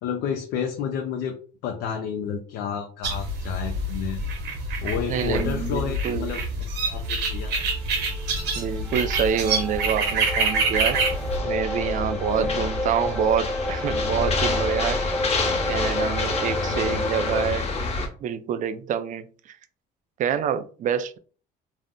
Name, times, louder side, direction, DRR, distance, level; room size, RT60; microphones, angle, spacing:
voice 1, 0.0-1.4 1.6-4.2 4.8-6.4 6.9-7.7 12.4-12.7 15.5-15.6 16.7-17.0, left 7 dB, 85° left, 0.5 m, -30 dB
sound 1, 3.0-11.4, right 2 dB, 75° right, 1.0 m, -26 dB
voice 2, 5.1-6.3 8.5-11.0 11.4-15.0 15.7-17.7 18.2-19.6 20.2-21.2, right 8 dB, 50° right, 0.4 m, -27 dB
sound 2, 7.1-17.5, left 1 dB, 5° left, 0.5 m, -31 dB
sound 3, 10.7-18.1, left 3 dB, 35° left, 0.7 m, -28 dB
2.6 x 2.0 x 3.5 m
cardioid pair, 110°, 17 cm